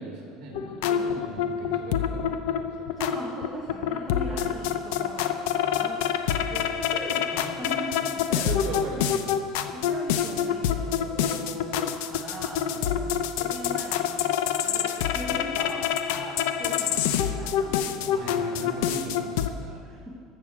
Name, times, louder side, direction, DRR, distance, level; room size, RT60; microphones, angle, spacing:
voice 1, 0.0-3.1 8.3-9.8 10.6-10.7 12.7-13.1 18.1-19.8, right 3 dB, 45° right, -2 dB, 3.7 m, -39 dB
sound 1, 0.5-19.5, left 9 dB, 75° left, 0.7 m, -27 dB
voice 2, 3.0-8.9 9.7-14.3 14.6-18.1 19.8-20.1, right 1 dB, 10° right, -4 dB, 1.4 m, -40 dB
14.0 x 6.5 x 7.4 m, 2.1 s
cardioid pair, 165°, 0 cm